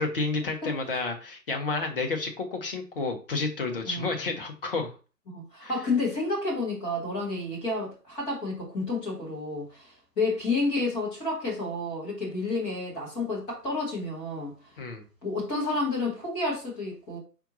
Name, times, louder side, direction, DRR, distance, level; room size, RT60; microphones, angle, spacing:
voice 1, 0.0-4.9 5.6-5.7 14.8-15.0, left 3 dB, 35° left, 4 dB, 1.0 m, -30 dB
voice 2, 5.3-14.5 15.2-17.2, left 2 dB, 10° left, -5 dB, 1.1 m, -30 dB
4.5 x 4.2 x 2.7 m, 0.35 s
figure-of-eight pair, 140°, 48 cm